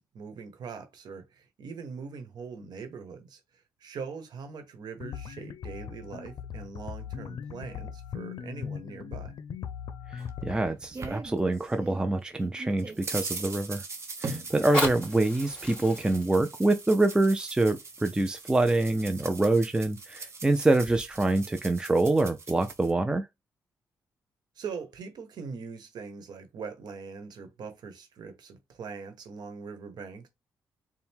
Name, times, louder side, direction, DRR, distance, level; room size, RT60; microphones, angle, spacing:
voice 1, 0.0-3.4 3.8-9.3 24.6-30.3, right 5 dB, 70° right, 1.1 m, -42 dB
sound 1, 5.0-10.7, left 8 dB, 70° left, 0.5 m, -39 dB
voice 2, 10.1-13.8 14.2-23.3, right 2 dB, 10° right, 0.5 m, -25 dB
sound 2, 10.2-12.0 12.4-22.9, right 4 dB, 40° right, 0.9 m, -41 dB
Fire, 14.5-19.4 20.1-20.2, equal, 15° left, 2.4 m, -36 dB
4.3 x 2.2 x 3.6 m
cardioid pair, 85°, 7 cm